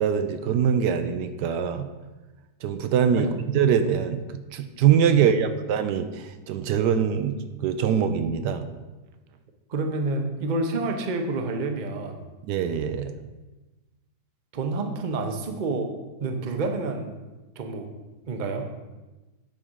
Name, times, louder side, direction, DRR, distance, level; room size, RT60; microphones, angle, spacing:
voice 1, 0.0-1.9 2.6-3.3 3.5-4.2 4.5-8.7 12.4-13.1, right 8 dB, 80° right, 9 dB, 1.2 m, -23 dB
voice 2, 5.1-5.6 9.7-12.2 14.5-15.9 16.2-17.1 17.6-17.9 18.3-18.7, right 3 dB, 40° right, 5 dB, 0.7 m, -28 dB
9.2 x 3.8 x 6.2 m, 1.1 s
omnidirectional pair, 1.8 m